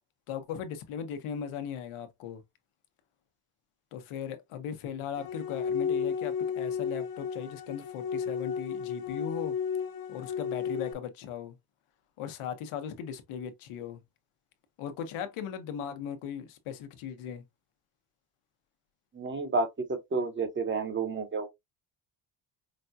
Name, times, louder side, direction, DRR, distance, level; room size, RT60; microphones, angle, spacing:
voice 1, 0.3-2.4 3.9-9.6 10.1-11.6 12.2-14.0 14.8-17.4, left 8 dB, 90° left, 1.0 m, -38 dB
sound 1, 5.2-10.9, left 6 dB, 45° left, 0.8 m, -33 dB
voice 2, 19.1-21.5, right 3 dB, 25° right, 0.9 m, -30 dB
5.2 x 2.3 x 2.6 m
cardioid pair, 145°, 49 cm